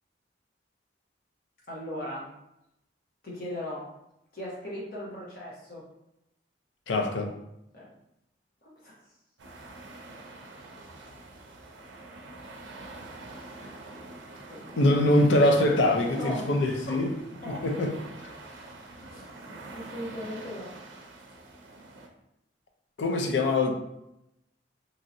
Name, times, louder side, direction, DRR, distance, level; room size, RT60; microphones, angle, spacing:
voice 1, 1.7-2.3 3.2-3.8 4.3-5.8 7.7-7.9 8.6-8.9 14.5-14.8 16.1-16.5 16.9-17.0 17.4-17.7 19.0-20.7, equal, 50° left, -5 dB, 1.0 m, -38 dB
voice 2, 6.9-7.3 14.8-17.1 17.5-17.9 23.0-23.7, left 1 dB, 80° left, 4 dB, 0.4 m, -23 dB
sound 1, 9.4-22.1, right 2 dB, 85° right, 0.5 m, -45 dB
2.9 x 2.7 x 2.5 m, 0.85 s
head